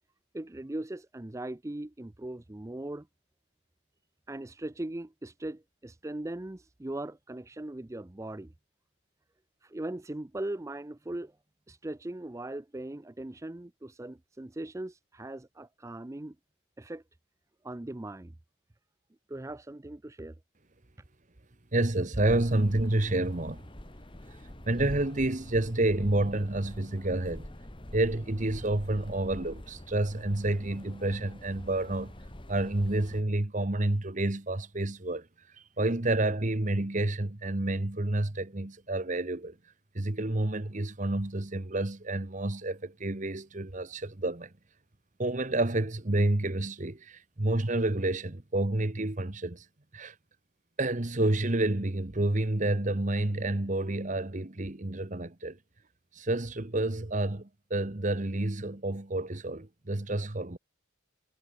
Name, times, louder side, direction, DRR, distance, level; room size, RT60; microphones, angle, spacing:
voice 1, 0.3-3.1 4.3-8.5 9.6-11.4 11.7-16.4 16.8-17.0 17.6-18.3 19.3-20.3, right 1 dB, 15° right, 0.4 m, -39 dB
voice 2, 21.7-23.6 24.7-27.5 27.9-32.1 32.5-35.3 35.8-39.5 39.9-44.5 45.2-49.6 49.9-50.1 50.8-55.6 56.1-60.6, right 2 dB, 35° right, 1.2 m, -29 dB
sound 1, 22.3-33.2, left 1 dB, 25° left, 1.6 m, -45 dB
head